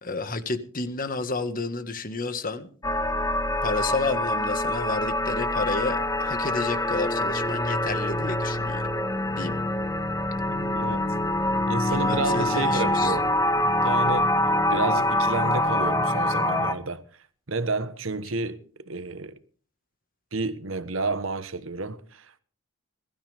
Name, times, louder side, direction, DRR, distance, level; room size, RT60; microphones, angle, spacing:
voice 1, 0.0-2.7 3.6-8.8 9.4-9.6 11.9-13.1, left 3 dB, 45° left, 1.7 m, -31 dB
sound 1, 2.8-16.7, left 1 dB, 15° left, 1.3 m, -25 dB
Organ, 5.8-16.7, right 9 dB, 5° right, 5.7 m, -50 dB
voice 2, 10.5-11.1 11.7-13.3 13.8-14.3 14.7-17.0 17.5-19.4 20.3-22.4, right 3 dB, 70° right, 1.2 m, -30 dB
22.0 x 13.0 x 3.5 m
head